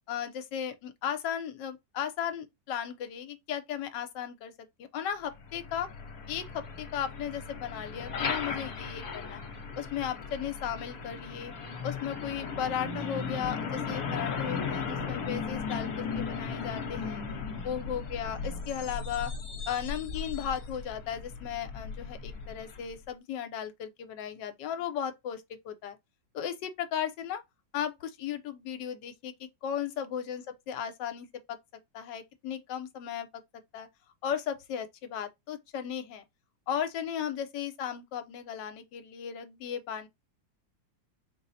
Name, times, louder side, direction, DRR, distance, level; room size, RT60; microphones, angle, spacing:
voice 1, 0.1-4.5 4.8-5.9 6.3-9.4 9.8-11.5 11.8-17.2 17.6-19.3 19.7-26.0 26.3-27.4 27.7-31.6 31.9-33.3 33.7-33.9 34.2-36.2 36.7-40.1, left 9 dB, 70° left, 1.3 m, -36 dB
Truck, 5.3-23.0, left 5 dB, 55° left, 1.2 m, -37 dB
4.3 x 2.0 x 4.0 m
omnidirectional pair, 2.1 m